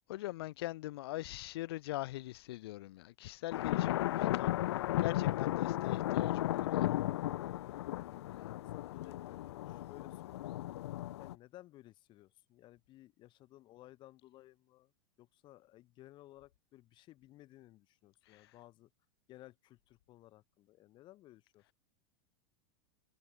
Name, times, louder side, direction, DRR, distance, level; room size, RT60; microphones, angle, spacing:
voice 1, 0.1-4.6 5.0-7.0 18.2-18.5, left 17 dB, 70° left, 1.2 m, -42 dB
sound 1, 3.5-11.3, left 15 dB, 85° left, 0.5 m, -35 dB
voice 2, 7.9-10.5 11.2-14.9 15.2-18.9 19.3-21.7, left 16 dB, 35° left, 5.8 m, -58 dB
supercardioid pair, 150°, 14 cm